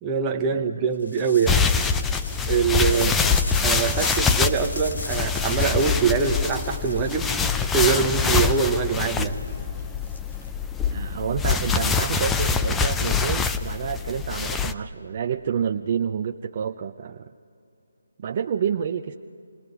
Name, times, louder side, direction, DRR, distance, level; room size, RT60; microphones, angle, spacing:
voice 1, 0.0-1.6 2.4-3.2 3.6-7.3 7.6-9.4, right 6 dB, 20° right, 4 dB, 1.1 m, -23 dB
sound 1, 1.0-10.9, left 2 dB, 75° left, 3.1 m, -38 dB
sound 2, 1.5-14.7, left 5 dB, 10° left, 0.5 m, -24 dB
voice 2, 2.7-3.4 10.9-17.3 18.2-19.1, right 7 dB, 40° right, 5 dB, 0.6 m, -29 dB
28.5 x 19.5 x 4.9 m, 2.6 s
figure-of-eight pair, 150°, 0 cm